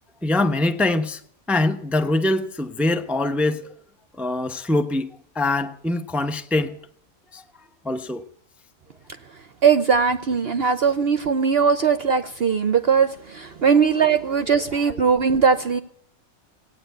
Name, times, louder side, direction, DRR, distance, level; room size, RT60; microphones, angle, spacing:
voice 1, 0.2-1.2 1.5-3.7 4.1-6.8 7.3-7.4 7.8-8.2 14.5-14.6 14.9-15.0, left 2 dB, ahead, 0.6 m, -23 dB
voice 2, 9.6-15.8, right 6 dB, 55° right, 0.9 m, -19 dB
17.0 x 9.5 x 7.9 m
omnidirectional pair, 1.4 m